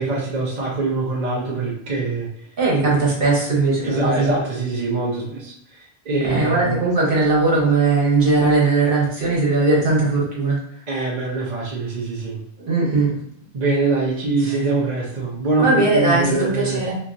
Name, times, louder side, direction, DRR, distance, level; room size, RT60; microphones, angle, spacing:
voice 1, 0.0-2.3 3.8-6.8 10.9-12.4 13.5-16.8, right 3 dB, 45° right, -6 dB, 0.7 m, -23 dB
voice 2, 2.6-4.4 6.2-10.6 12.6-13.1 15.6-17.0, right 3 dB, 60° right, -5 dB, 1.3 m, -19 dB
2.8 x 2.8 x 2.5 m, 0.71 s
omnidirectional pair, 1.0 m